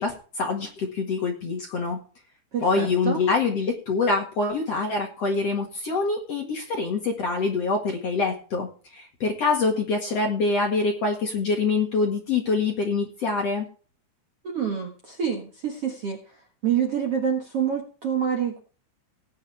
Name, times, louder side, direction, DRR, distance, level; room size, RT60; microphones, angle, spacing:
voice 1, 0.0-2.0 2.6-13.7, left 4 dB, 55° left, 2 dB, 1.9 m, -25 dB
voice 2, 2.5-3.2 14.4-16.4 16.6-18.6, right 8 dB, 70° right, 2 dB, 1.4 m, -27 dB
18.5 x 9.4 x 3.4 m, 0.40 s
omnidirectional pair, 5.3 m